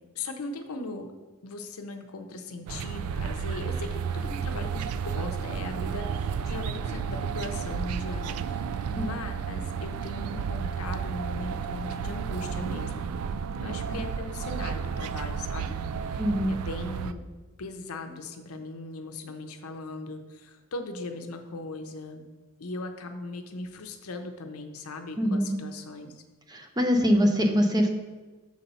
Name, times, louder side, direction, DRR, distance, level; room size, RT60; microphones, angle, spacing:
voice 1, 0.1-1.1 1.4-13.1 13.6-15.8 16.1-16.2 16.5-17.2 17.6-22.2 22.6-26.2, left 2 dB, 75° left, 5 dB, 0.7 m, -38 dB
sound 1, 2.7-17.1, right 6 dB, 75° right, 0.3 m, -32 dB
voice 2, 16.2-16.6 25.2-25.6 26.5-27.9, equal, 20° right, 4 dB, 0.6 m, -23 dB
6.5 x 4.1 x 5.4 m, 1.3 s
head